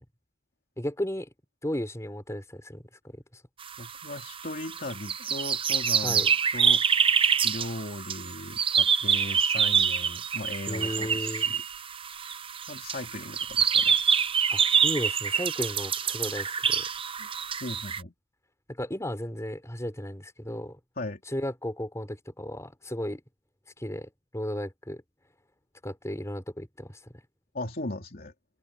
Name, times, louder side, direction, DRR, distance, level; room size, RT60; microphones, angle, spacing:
voice 1, 0.8-1.3 1.6-3.4 6.0-6.3 10.7-11.5 14.5-16.8 18.7-20.8 21.3-23.2 23.8-25.0 25.8-27.0, equal, 15° left, 4.5 m, -34 dB
sound 1, 3.6-18.0, right 7 dB, 30° right, 0.7 m, -26 dB
voice 2, 3.8-6.8 7.4-11.6 12.1-12.3 12.7-14.0 17.2-17.3 17.6-18.1 21.0-21.2 27.5-28.3, left 1 dB, 50° left, 3.1 m, -38 dB
open air
head